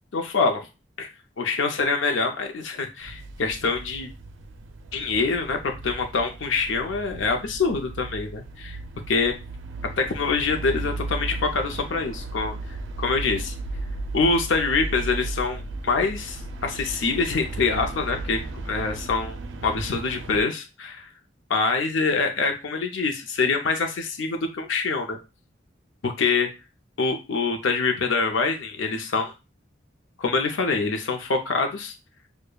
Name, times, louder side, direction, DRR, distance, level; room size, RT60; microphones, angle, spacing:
voice 1, 0.1-0.6 1.0-1.1 1.4-4.1 4.9-5.6 5.8-8.8 9.1-9.3 10.0-12.5 13.0-13.5 14.1-19.4 19.6-21.1 21.5-25.2 26.0-26.5 27.0-29.3 30.2-31.9, left 4 dB, 80° left, 4 dB, 0.5 m, -25 dB
sound 1, 3.0-20.4, right 2 dB, 80° right, 0.4 m, -35 dB
6.4 x 2.1 x 2.2 m, 0.29 s
head